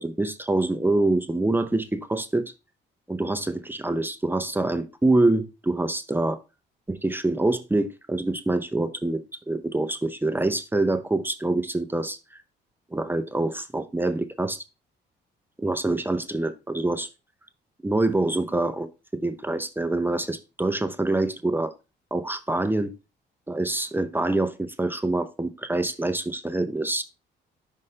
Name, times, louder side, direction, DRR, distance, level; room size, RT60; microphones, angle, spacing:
voice 1, 0.0-2.5 3.1-6.4 6.9-12.2 12.9-14.6 15.6-17.1 17.8-18.9 19.2-21.7 22.1-22.9 23.5-27.0, right 2 dB, 10° right, 0.6 m, -25 dB
5.6 x 5.3 x 3.2 m
cardioid pair, 90°, 20 cm